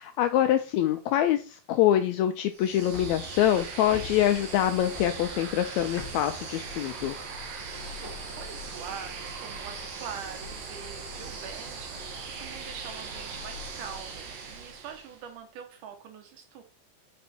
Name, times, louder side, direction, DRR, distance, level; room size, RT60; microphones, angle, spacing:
voice 1, 0.0-7.2, left 11 dB, 80° left, 8 dB, 1.6 m, -25 dB
sound 1, 2.5-15.3, right 4 dB, 65° right, 2.2 m, -39 dB
sound 2, 2.9-8.5, left 4 dB, 15° left, 1.1 m, -46 dB
voice 2, 8.0-16.6, right 7 dB, 80° right, 6 dB, 2.7 m, -44 dB
5.6 x 5.1 x 4.2 m, 0.37 s
omnidirectional pair, 3.6 m